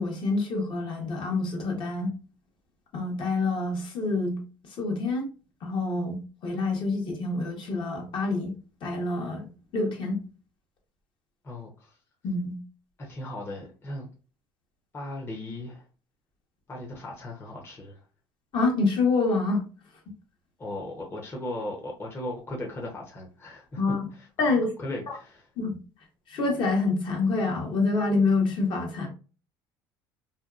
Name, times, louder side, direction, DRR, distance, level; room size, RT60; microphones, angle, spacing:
voice 1, 0.0-2.1 2.9-4.4 4.7-5.2 5.6-8.6 8.8-10.2 12.2-12.6 18.5-19.6 23.8-24.1 24.4-24.7 25.1-25.2 25.6-25.8 26.3-29.1, left 3 dB, 50° left, 0.9 m, -27 dB
voice 2, 11.4-12.0 13.0-14.1 14.9-15.8 16.7-18.0 20.6-24.5 24.8-25.4, left 1 dB, 25° left, 0.7 m, -37 dB
2.6 x 2.2 x 2.4 m
supercardioid pair, 95°, 10 cm